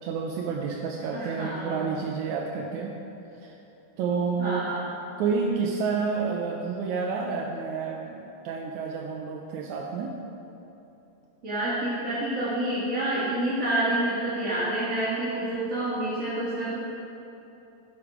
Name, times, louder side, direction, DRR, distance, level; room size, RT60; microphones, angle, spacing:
voice 1, 0.0-3.0 3.4-3.6 4.0-4.7 5.2-10.1, right 5 dB, 85° right, -1 dB, 2.1 m, -29 dB
voice 2, 1.1-1.9 4.4-4.9 11.4-16.7, right 1 dB, 35° right, -10 dB, 1.6 m, -28 dB
11.5 x 8.8 x 5.0 m, 2.9 s
omnidirectional pair, 3.4 m